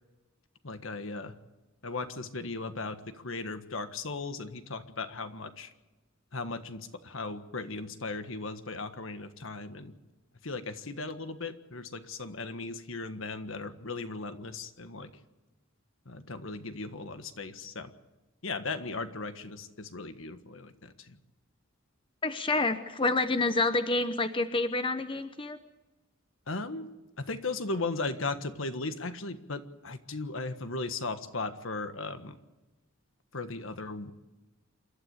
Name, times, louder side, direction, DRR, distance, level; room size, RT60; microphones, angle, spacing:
voice 1, 0.6-1.4 1.8-5.7 6.3-9.9 10.4-15.2 16.0-17.9 18.4-21.2 26.5-26.9 27.2-32.4 33.3-34.1, left 3 dB, 70° left, 9 dB, 1.5 m, -37 dB
voice 2, 22.2-25.6, left 3 dB, 25° left, 9 dB, 1.0 m, -28 dB
28.0 x 12.5 x 8.2 m, 1.1 s
head